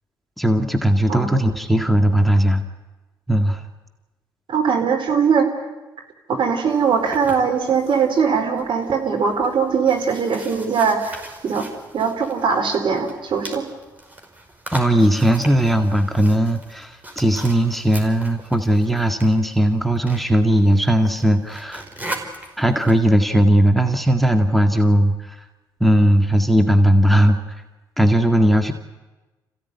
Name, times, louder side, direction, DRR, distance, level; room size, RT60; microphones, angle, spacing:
voice 1, 0.4-2.6 3.3-3.6 14.7-21.8 22.6-25.4 25.8-27.4 28.0-28.7, right 1 dB, ahead, 5 dB, 2.0 m, -17 dB
voice 2, 1.1-1.4 4.5-5.6 6.3-11.7 11.9-13.6, right 6 dB, 55° right, 3 dB, 4.3 m, -21 dB
sound 1, 6.7-23.1, right 1 dB, 15° right, 5.4 m, -39 dB
27.0 x 15.5 x 9.8 m, 1.1 s
hypercardioid pair, 45°, 10 cm